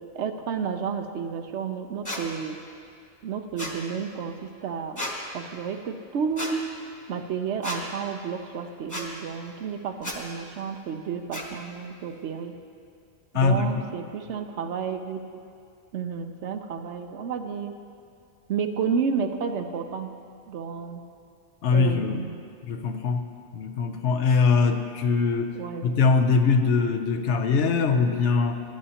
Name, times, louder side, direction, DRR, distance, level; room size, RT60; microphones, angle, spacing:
voice 1, 0.0-2.6 3.2-5.0 5.3-6.6 7.1-12.5 13.3-15.2 15.9-17.8 18.5-20.1 20.5-21.0 21.7-22.4 25.5-26.1, right 6 dB, 65° right, 7 dB, 0.9 m, -31 dB
sound 1, 2.1-2.2 3.6-3.8 5.0-5.1 6.4-6.5 7.6-7.8 8.9-9.1 10.0-10.2 11.3-11.5, left 1 dB, 15° left, 1.1 m, -32 dB
voice 2, 13.3-13.7 21.6-22.2 22.6-23.2 23.5-25.6 25.8-28.6, left 4 dB, 65° left, 6 dB, 0.9 m, -22 dB
18.0 x 9.9 x 2.9 m, 2.4 s
omnidirectional pair, 1.3 m